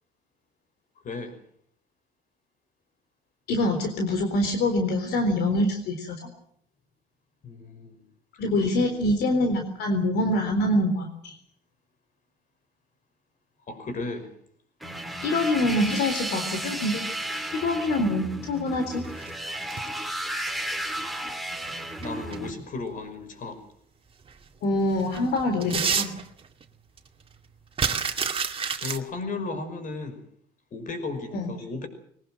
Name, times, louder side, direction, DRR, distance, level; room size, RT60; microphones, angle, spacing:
voice 1, 1.0-1.4 7.4-8.0 8.6-9.0 13.7-14.3 22.0-23.6 28.1-28.3 28.8-30.2 30.7-31.9, left 3 dB, 50° left, 9 dB, 5.7 m, -35 dB
voice 2, 3.5-6.2 8.4-11.3 15.2-17.0 17.6-19.1 24.6-26.2 31.3-31.5, left 1 dB, 75° left, 5 dB, 3.9 m, -25 dB
sound 1, 14.8-22.5, right 1 dB, ahead, 2.4 m, -33 dB
sound 2, 19.0-20.0 21.7-22.4 22.9-23.0 24.3-24.4 24.7-26.6 27.0-27.1 27.3-29.0, right 6 dB, 35° right, 2.1 m, -29 dB
22.0 x 19.0 x 7.7 m, 0.67 s
cardioid pair, 110°, 17 cm